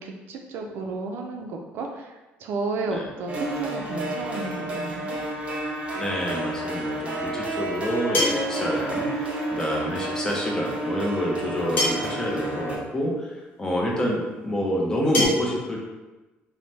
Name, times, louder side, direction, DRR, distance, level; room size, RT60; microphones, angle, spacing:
voice 1, 0.0-5.2, right 3 dB, 60° right, 3 dB, 0.4 m, -32 dB
sound 1, 3.3-12.8, right 1 dB, 30° right, 0.6 m, -30 dB
voice 2, 5.9-15.8, equal, 15° left, -2 dB, 0.5 m, -28 dB
sound 2, 8.1-8.6 10.1-10.2 11.8-12.2 13.4-13.5 15.1-15.3, left 2 dB, 50° left, 0.9 m, -24 dB
3.2 x 2.1 x 2.7 m, 1.1 s
cardioid pair, 145°, 4 cm